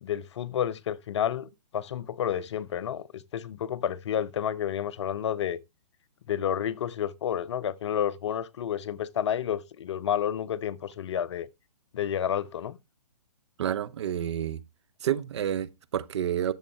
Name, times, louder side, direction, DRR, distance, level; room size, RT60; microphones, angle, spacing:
voice 1, 0.0-5.6 6.3-11.5 11.9-12.8, left 9 dB, 45° left, 0.6 m, -30 dB
voice 2, 13.6-14.6 15.0-16.5, right 10 dB, 45° right, 0.7 m, -29 dB
12.0 x 7.1 x 3.2 m
figure-of-eight pair, 125°, 20 cm